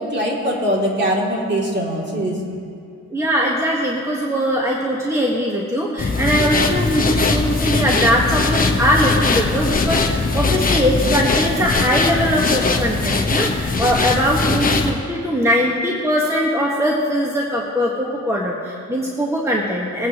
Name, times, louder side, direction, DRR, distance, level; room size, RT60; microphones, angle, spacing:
voice 1, 0.0-2.6, equal, 35° right, -3 dB, 3.1 m, -22 dB
voice 2, 3.1-20.1, equal, 10° right, -3 dB, 1.6 m, -20 dB
sound 1, 6.0-14.9, left 3 dB, 30° left, 1.2 m, -20 dB
22.0 x 9.1 x 3.1 m, 2.4 s
cardioid pair, 90°, 30 cm